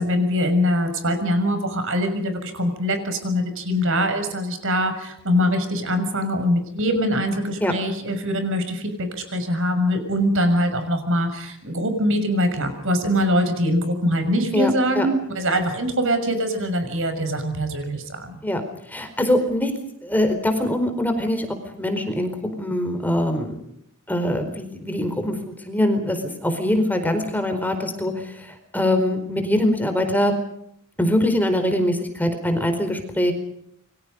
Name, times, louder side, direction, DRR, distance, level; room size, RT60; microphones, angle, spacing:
voice 1, 0.0-18.4, equal, 60° right, 8 dB, 6.4 m, -23 dB
voice 2, 14.5-15.1 18.4-18.6 18.9-19.7 20.0-21.5 21.8-23.6 24.1-25.4 25.6-30.4 31.0-33.3, left 1 dB, 10° left, 7 dB, 4.5 m, -23 dB
29.0 x 24.5 x 5.3 m, 0.71 s
head